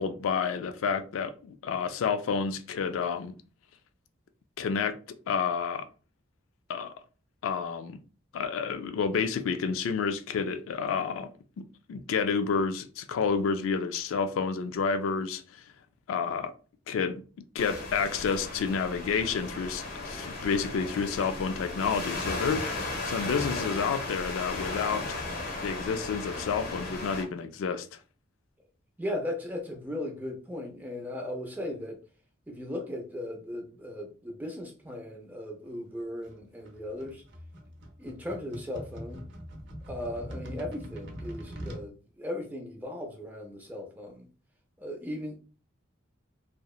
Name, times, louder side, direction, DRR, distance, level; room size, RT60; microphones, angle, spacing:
voice 1, 0.0-3.3 4.6-5.0 5.3-5.9 6.7-6.9 7.4-8.0 8.3-11.3 11.6-15.6 16.1-16.5 16.9-17.2 17.5-25.2 25.6-28.0, left 5 dB, 75° left, 0.3 m, -30 dB
sound 1, 17.6-27.2, left 2 dB, 45° left, 0.7 m, -36 dB
voice 2, 29.0-32.0 32.5-37.2 38.0-39.2 39.8-44.3 44.8-45.4, left 1 dB, 10° right, 0.4 m, -37 dB
sound 2, 36.2-41.9, equal, 55° right, 0.6 m, -42 dB
2.7 x 2.0 x 2.3 m
head